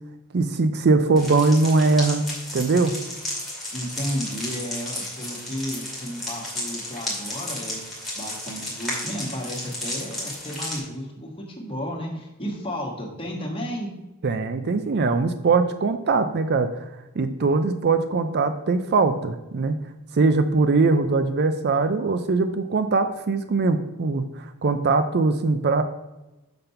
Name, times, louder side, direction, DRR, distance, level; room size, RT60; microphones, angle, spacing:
voice 1, 0.3-2.2 2.5-2.9 14.2-16.7 17.2-19.8 20.1-25.8, right 3 dB, 45° right, 9 dB, 0.5 m, -21 dB
sound 1, 1.2-10.8, left 1 dB, ahead, 2.4 m, -33 dB
voice 2, 3.7-13.9, equal, 25° left, -1 dB, 1.5 m, -33 dB
6.0 x 5.2 x 5.6 m, 0.99 s
head